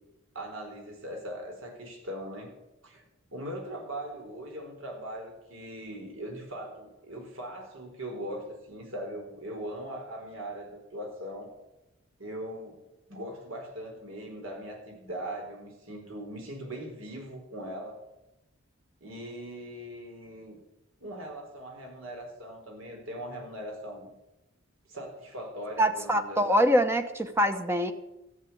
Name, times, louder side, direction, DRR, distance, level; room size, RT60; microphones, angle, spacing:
voice 1, 0.3-2.5 2.8-3.0 3.3-11.5 12.2-12.8 13.1-18.0 19.0-20.6 21.0-24.1 24.9-26.4, right 1 dB, 70° right, 2 dB, 4.2 m, -40 dB
voice 2, 25.8-27.9, equal, 10° right, 8 dB, 0.8 m, -24 dB
14.0 x 8.2 x 8.5 m, 0.95 s
head